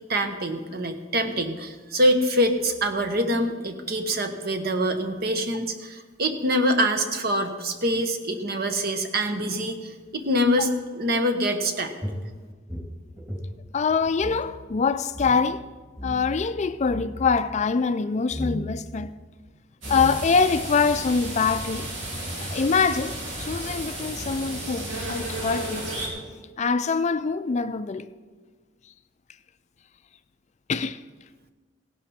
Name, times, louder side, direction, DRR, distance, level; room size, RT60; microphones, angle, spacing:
voice 1, 0.1-11.9, equal, 55° right, 1.2 m, -25 dB
sound 1, 12.0-14.5 14.7-14.8 15.1-15.4 16.0-16.4 16.8-17.3 18.3-18.7 19.5-19.6 19.8-20.4, left 1 dB, 10° right, 2.2 m, -34 dB
voice 2, 13.7-15.6 16.0-19.1 19.9-21.9 22.5-25.8 26.6-28.1 30.7-31.0, left 5 dB, 35° left, 0.4 m, -24 dB
sound 2, 19.8-26.1, right 1 dB, 75° right, 3.9 m, -33 dB
17.0 x 11.5 x 4.3 m
head